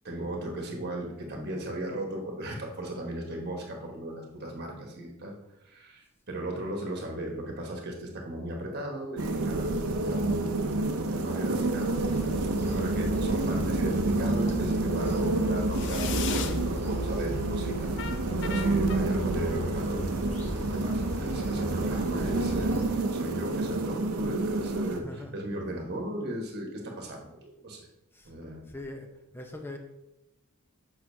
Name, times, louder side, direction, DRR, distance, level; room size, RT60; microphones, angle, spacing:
voice 1, 0.0-5.3 5.6-11.9 12.6-17.9 18.4-20.1 20.5-27.9 28.2-28.6, right 1 dB, 50° right, 1 dB, 1.3 m, -36 dB
sound 1, 9.2-25.0, right 2 dB, 85° right, 0.6 m, -29 dB
sound 2, 11.9-22.8, equal, 35° left, 1.1 m, -35 dB
sound 3, 13.4-14.0 15.7-16.6 18.0-19.0, left 8 dB, 60° left, 0.5 m, -37 dB
voice 2, 25.0-25.3 28.1-28.3 28.7-29.1 29.3-29.8, left 2 dB, 10° left, 3 dB, 0.7 m, -41 dB
6.7 x 6.0 x 2.7 m, 0.92 s
head